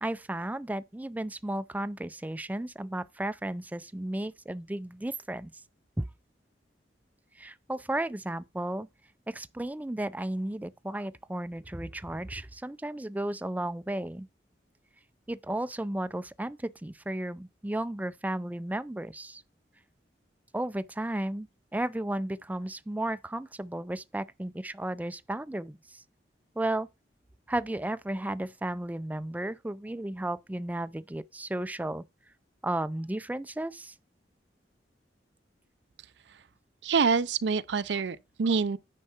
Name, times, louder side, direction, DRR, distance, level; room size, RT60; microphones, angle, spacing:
voice 1, 0.0-5.5 6.0-6.1 7.4-8.9 9.3-14.3 15.3-19.4 20.5-21.5 21.7-26.0 26.6-26.9 27.5-32.0 32.6-33.9, right 1 dB, 10° right, 0.4 m, -34 dB
voice 2, 36.8-38.8, right 5 dB, 75° right, 0.5 m, -26 dB
9.9 x 4.6 x 4.3 m
head